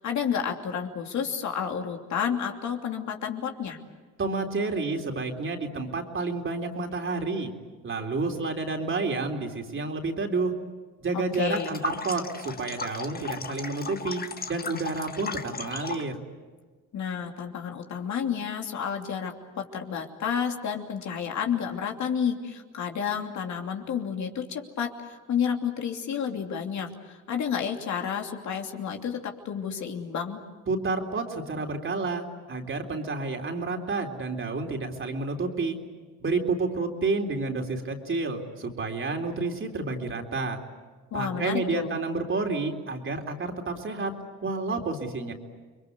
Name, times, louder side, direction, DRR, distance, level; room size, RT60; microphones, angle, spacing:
voice 1, 0.0-3.8 11.1-11.8 16.9-30.4 41.1-41.9, left 7 dB, 65° left, 3 dB, 3.0 m, -30 dB
voice 2, 4.2-7.5 7.8-10.5 11.0-14.2 14.5-16.2 30.7-35.8 36.2-40.6 41.1-44.1 44.4-45.3, right 3 dB, 40° right, 2 dB, 3.7 m, -30 dB
Falling Water, 11.4-16.1, left 4 dB, 30° left, 1.6 m, -36 dB
29.5 x 22.5 x 8.2 m, 1.4 s
cardioid pair, 90°, 30 cm